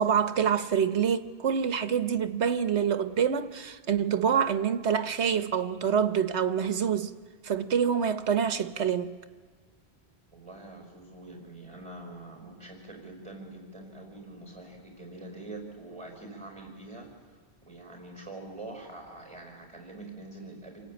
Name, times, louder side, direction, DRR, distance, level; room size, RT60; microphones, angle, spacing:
voice 1, 0.0-7.2 7.4-9.2, right 7 dB, 85° right, 1.3 m, -26 dB
voice 2, 10.3-20.8, right 2 dB, 25° right, 5.2 m, -45 dB
28.5 x 18.5 x 9.0 m
omnidirectional pair, 1.1 m